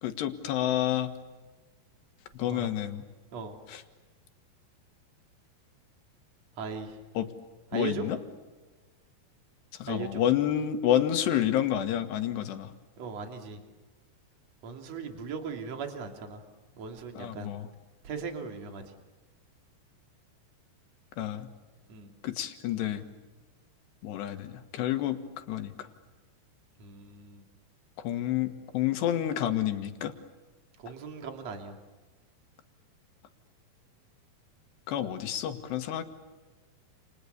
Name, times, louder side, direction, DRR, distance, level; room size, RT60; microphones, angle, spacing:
voice 1, 0.0-1.1 2.4-3.0 3.7-3.8 7.2-7.3 7.7-8.2 9.8-12.7 17.2-17.7 21.2-21.5 22.2-23.1 24.0-25.9 28.0-30.1 34.9-36.0, left 11 dB, 75° left, 8 dB, 3.7 m, -29 dB
voice 2, 6.6-7.0 7.7-8.1 9.9-10.2 13.0-13.6 14.6-16.4 16.8-17.5 18.0-18.8 21.9-22.1 26.8-27.4 30.8-31.7, right 5 dB, 40° right, 4 dB, 3.5 m, -38 dB
29.5 x 29.5 x 6.9 m, 1.3 s
omnidirectional pair, 4.9 m